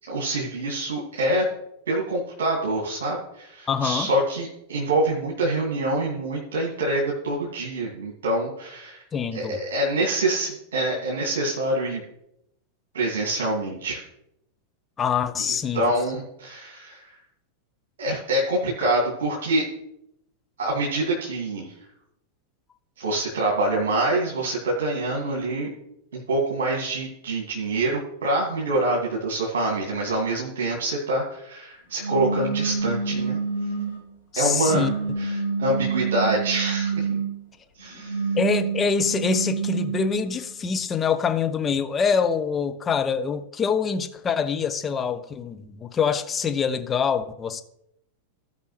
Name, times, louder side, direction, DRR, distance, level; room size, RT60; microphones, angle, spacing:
voice 1, 0.0-1.5 1.9-9.0 9.3-12.0 12.9-14.0 15.7-17.2 18.0-19.7 20.6-21.7 23.0-25.7 26.1-33.4 34.4-37.1 37.8-38.2, right 2 dB, 60° right, 2.1 m, -26 dB
voice 2, 3.7-4.1 9.1-9.6 15.0-15.9 34.3-34.9 38.4-47.6, left 6 dB, 20° left, 0.8 m, -25 dB
sound 1, 32.0-34.0 34.7-37.3 37.9-40.2, right 5 dB, 85° left, 2.7 m, -27 dB
16.5 x 5.6 x 3.2 m
figure-of-eight pair, 90°, 0 cm